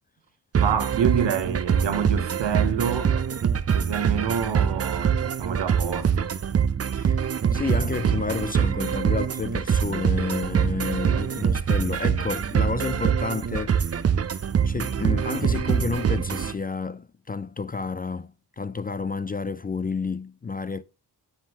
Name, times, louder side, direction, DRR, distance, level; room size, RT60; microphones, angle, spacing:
sound 1, 0.5-16.5, right 7 dB, 35° right, 0.5 m, -24 dB
voice 1, 0.6-3.2 3.7-6.3, right 7 dB, 80° right, 1.0 m, -27 dB
voice 2, 7.5-14.1 14.6-18.3 18.6-20.8, left 4 dB, 25° left, 0.3 m, -30 dB
9.8 x 3.7 x 2.9 m
cardioid pair, 45°, 42 cm